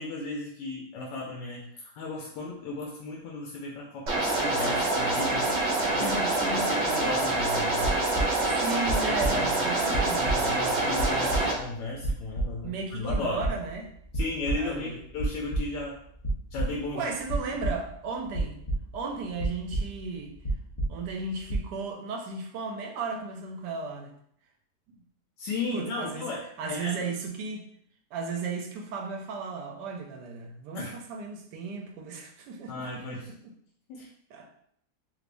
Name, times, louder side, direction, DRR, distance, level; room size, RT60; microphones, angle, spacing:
voice 1, 0.0-5.6 5.9-7.9 8.7-9.7 9.9-13.5 14.1-16.0 16.5-17.1 17.5-17.6 25.4-26.4 26.7-27.0 30.7-30.9 32.7-33.3 33.9-34.1, left 2 dB, 85° left, -2 dB, 1.2 m, -35 dB
sound 1, 4.1-11.5, right 2 dB, 60° right, 0.7 m, -26 dB
voice 2, 6.0-6.7 8.5-10.3 12.6-13.9 14.5-15.0 16.9-18.6 18.9-20.3 20.9-24.1 24.9-25.0 25.7-26.3 26.6-27.7 28.1-33.5 34.3-34.5, right 4 dB, 75° right, 2 dB, 1.2 m, -35 dB
sound 2, 7.4-8.5 8.8-9.6 9.9-11.6 12.0-12.8 13.1-13.9 14.1-14.8 15.2-15.8 16.2-17.0 17.3-17.9 18.3-19.1 19.4-20.2 20.4-21.2 21.5-21.7, right 2 dB, 45° left, 0.7 m, -31 dB
3.3 x 3.1 x 2.5 m, 0.69 s
omnidirectional pair, 1.8 m